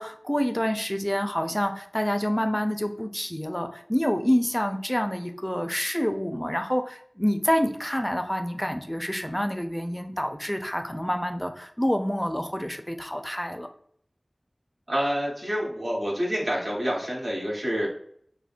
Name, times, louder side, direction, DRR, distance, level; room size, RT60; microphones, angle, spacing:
voice 1, 0.0-13.7, equal, 15° left, 6 dB, 0.4 m, -27 dB
voice 2, 14.9-17.9, equal, 80° right, -5 dB, 1.1 m, -27 dB
3.5 x 2.1 x 2.4 m, 0.63 s
wide cardioid pair, 40°, 0 cm